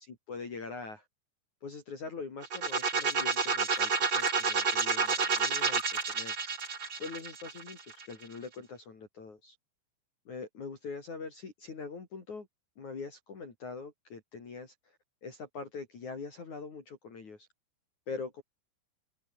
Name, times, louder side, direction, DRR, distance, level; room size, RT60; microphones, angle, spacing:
voice 1, 0.1-1.1 1.6-6.4 7.0-9.6 10.3-12.5 12.8-17.5 18.1-18.4, left 4 dB, 40° left, 4.8 m, -43 dB
sound 1, 2.4-8.2, right 5 dB, 30° right, 3.0 m, -30 dB
omnidirectional pair, 5.6 m